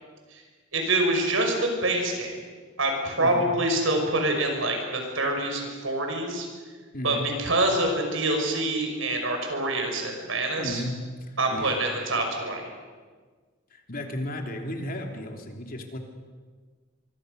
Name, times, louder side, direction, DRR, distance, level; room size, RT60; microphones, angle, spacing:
voice 1, 0.7-2.4 2.8-6.5 7.0-10.8 11.4-12.7, right 2 dB, 75° right, 3 dB, 6.0 m, -26 dB
voice 2, 3.2-3.5 6.9-7.3 10.6-11.0 11.3-11.8 13.7-16.0, left 1 dB, 45° left, 3 dB, 3.1 m, -34 dB
24.5 x 24.5 x 6.7 m, 1.5 s
head